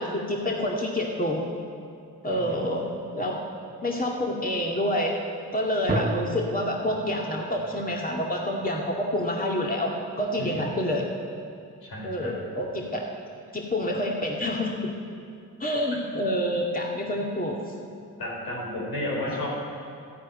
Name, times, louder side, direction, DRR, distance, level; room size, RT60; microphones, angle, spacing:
voice 1, 0.0-1.5 2.2-2.9 3.2-3.4 3.8-5.1 5.5-11.1 12.0-13.1 13.5-14.9 15.6-17.6 19.3-19.4, left 1 dB, 25° left, -1 dB, 2.2 m, -28 dB
sound 1, 5.9-9.3, right 1 dB, 25° right, 1.7 m, -33 dB
voice 2, 11.8-12.3 18.2-19.5, left 1 dB, 75° left, -4 dB, 5.0 m, -32 dB
13.5 x 10.0 x 9.4 m, 2.4 s
supercardioid pair, 50°, 37 cm